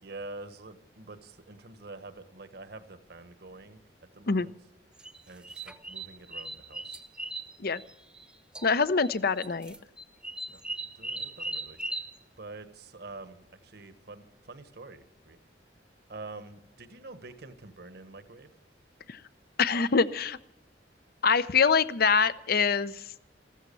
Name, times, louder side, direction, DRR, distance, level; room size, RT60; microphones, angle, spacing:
voice 1, 0.0-3.8 4.1-4.5 5.3-7.0 10.5-10.6 10.9-12.0 12.4-15.4 16.1-18.5, right 3 dB, 60° right, 10 dB, 1.4 m, -46 dB
sound 1, 5.0-8.3 8.5-9.1 9.4-12.1, right 2 dB, 5° right, 0.9 m, -38 dB
voice 2, 8.6-9.7 19.1-19.2 19.6-20.4 21.2-23.1, left 5 dB, 55° left, 15 dB, 0.7 m, -25 dB
14.5 x 14.0 x 6.9 m, 0.84 s
head